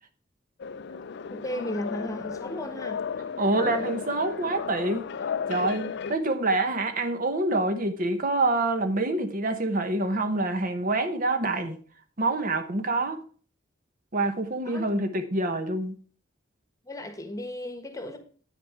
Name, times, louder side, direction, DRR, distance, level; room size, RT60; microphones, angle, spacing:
sound 1, 0.6-6.1, left 6 dB, 60° left, 0.4 m, -34 dB
voice 1, 1.3-3.0 14.6-14.9 16.8-18.2, equal, 15° left, 1.2 m, -35 dB
voice 2, 3.4-5.1 5.5-11.8 12.2-13.2 14.1-16.0, right 2 dB, 45° right, 1.0 m, -26 dB
9.3 x 6.9 x 4.8 m
head